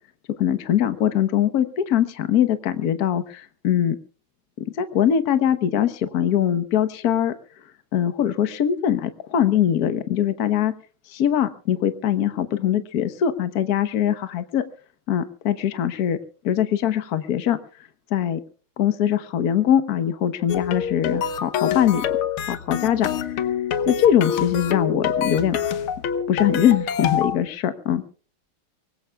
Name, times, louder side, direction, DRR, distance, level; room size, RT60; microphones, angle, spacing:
voice 1, 0.4-4.0 4.6-7.3 7.9-10.7 11.1-14.6 15.1-16.2 16.4-17.6 18.1-18.4 18.8-22.0 22.5-23.1 23.9-25.6 26.3-28.0, left 10 dB, 55° left, 10 dB, 1.4 m, -22 dB
sound 1, 20.5-27.4, left 8 dB, 85° left, 1.9 m, -26 dB
24.0 x 20.5 x 2.4 m, 0.39 s
omnidirectional pair, 2.3 m